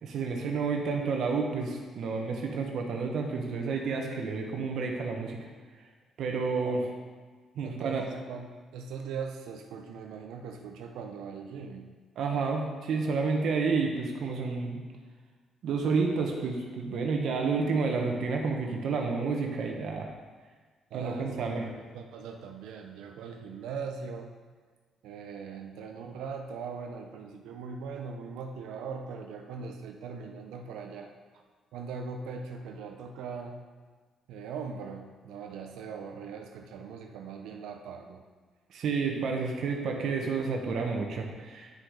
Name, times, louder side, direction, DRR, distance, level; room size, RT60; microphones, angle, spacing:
voice 1, 0.0-5.4 6.2-6.8 7.6-8.0 12.2-14.8 15.6-20.1 20.9-21.6 38.7-41.7, right 4 dB, 70° right, 2 dB, 1.3 m, -30 dB
voice 2, 7.6-11.9 20.9-24.3 25.0-31.1 31.7-33.6 34.3-38.2, right 5 dB, 90° right, 4 dB, 0.8 m, -40 dB
9.0 x 6.5 x 4.9 m, 1.5 s
cardioid pair, 90°, 0 cm